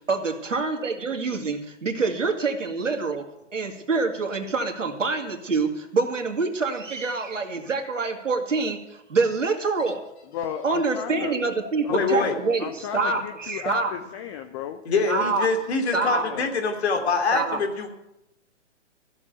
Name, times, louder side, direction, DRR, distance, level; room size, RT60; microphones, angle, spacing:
voice 1, 0.1-3.3 3.5-10.0 10.6-13.9 15.1-15.5 15.9-16.2 17.3-17.6, right 4 dB, 85° right, 4 dB, 2.4 m, -26 dB
voice 2, 10.3-11.3 11.9-12.3 12.6-14.8 16.1-16.5, left 8 dB, 25° left, 8 dB, 0.6 m, -34 dB
voice 3, 11.9-12.4 14.8-17.9, left 4 dB, 60° left, 5 dB, 2.9 m, -24 dB
14.5 x 7.3 x 9.2 m, 0.88 s
hypercardioid pair, 135°, 37 cm